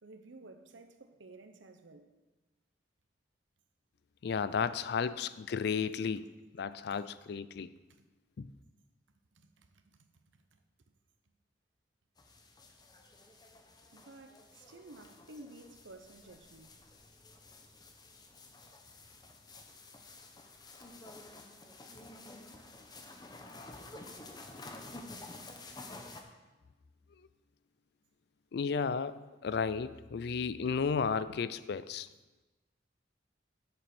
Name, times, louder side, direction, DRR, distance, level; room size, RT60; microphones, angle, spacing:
voice 1, 0.0-2.1 4.5-4.6 4.9-5.1 6.9-7.0 7.9-8.0 9.3-10.6 13.9-16.8, right 2 dB, 90° right, 0.9 m, -54 dB
voice 2, 4.2-6.3 6.5-7.7 8.4-8.5 28.5-32.1, left 6 dB, 60° left, 0.4 m, -33 dB
sound 1, 12.2-26.2, left 2 dB, 20° left, 0.8 m, -51 dB
7.8 x 6.8 x 6.0 m
head